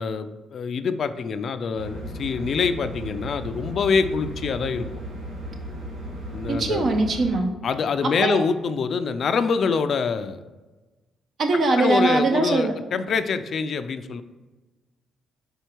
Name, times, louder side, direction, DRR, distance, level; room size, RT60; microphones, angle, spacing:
voice 1, 0.0-4.9 6.3-6.9 7.6-10.4 11.7-14.2, left 5 dB, 55° left, 10 dB, 0.4 m, -25 dB
sound 1, 1.7-7.3, right 1 dB, 70° right, 1.3 m, -35 dB
voice 2, 6.5-7.5 8.2-8.4 11.4-12.7, right 2 dB, 55° right, 5 dB, 0.8 m, -21 dB
4.9 x 4.5 x 4.5 m, 1.2 s
cardioid pair, 90°, 0 cm